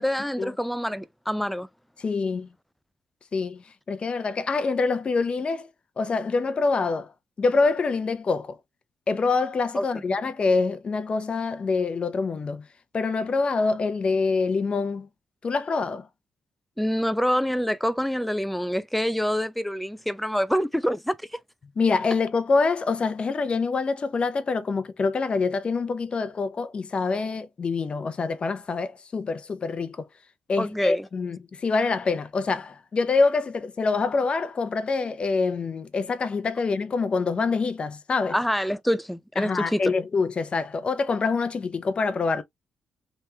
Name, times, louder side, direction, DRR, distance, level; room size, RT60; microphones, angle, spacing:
voice 1, 0.0-1.7 9.7-10.0 16.8-21.4 30.6-31.1 38.3-39.9, equal, 5° left, 0.4 m, -26 dB
voice 2, 2.0-2.5 3.3-3.6 3.9-5.7 6.0-7.1 7.4-8.6 9.1-12.6 12.9-15.1 15.4-16.1 21.8-30.1 30.5-38.3 39.4-42.4, left 4 dB, 40° left, 0.7 m, -25 dB
3.4 x 3.1 x 2.7 m
cardioid pair, 100°, 3 cm